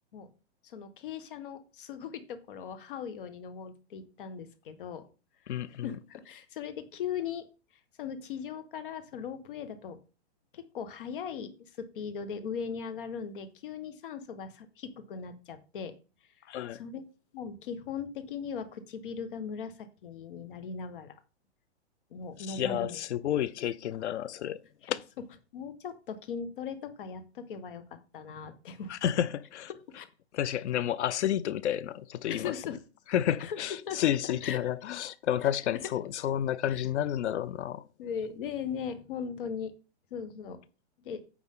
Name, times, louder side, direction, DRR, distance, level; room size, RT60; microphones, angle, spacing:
voice 1, 0.6-5.1 5.4-7.5 8.0-10.0 10.5-15.9 16.7-17.1 17.3-21.1 22.1-23.0 24.8-25.0 25.5-28.9 29.7-30.0 32.3-32.8 33.4-34.7 35.4-35.5 36.7-36.8 38.0-39.7 40.1-40.6 41.0-41.2, left 6 dB, 50° left, 1.5 m, -39 dB
voice 2, 5.5-5.9 16.5-16.8 22.5-24.6 24.9-25.0 28.9-29.7 30.3-32.5 33.1-37.8, left 11 dB, 80° left, 0.7 m, -30 dB
9.8 x 7.2 x 3.7 m
hypercardioid pair, 170°, 34 cm